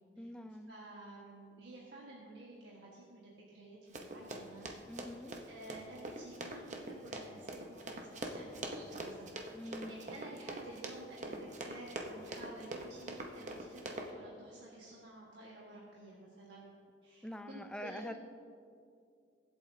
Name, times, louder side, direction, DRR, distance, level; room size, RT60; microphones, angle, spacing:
voice 1, 0.2-0.7 4.9-5.3 9.5-9.9 17.2-18.1, left 1 dB, 5° left, 8 dB, 0.4 m, -45 dB
voice 2, 0.7-4.8 5.5-16.7 17.0-18.1, right 2 dB, 65° right, -5 dB, 1.6 m, -52 dB
Run, 3.9-14.1, right 1 dB, 40° right, 0.9 m, -44 dB
23.5 x 7.9 x 2.8 m, 2.3 s
head